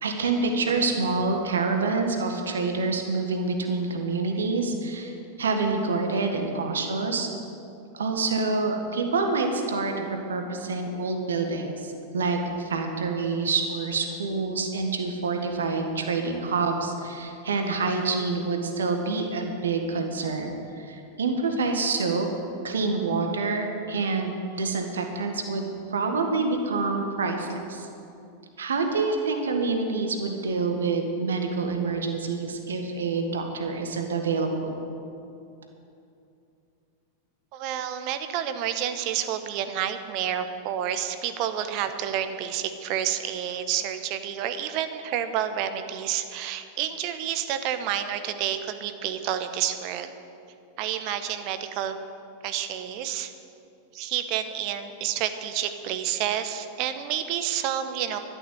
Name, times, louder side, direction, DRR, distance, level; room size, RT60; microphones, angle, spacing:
voice 1, 0.0-7.3 7.9-22.3 22.6-27.9 28.6-34.8, right 4 dB, 65° right, 4 dB, 1.7 m, -27 dB
voice 2, 37.5-50.1 50.8-51.9 52.4-53.3 53.9-58.2, right 10 dB, 45° right, 9 dB, 1.1 m, -29 dB
12.5 x 11.0 x 7.9 m, 2.6 s
figure-of-eight pair, 90°, 0 cm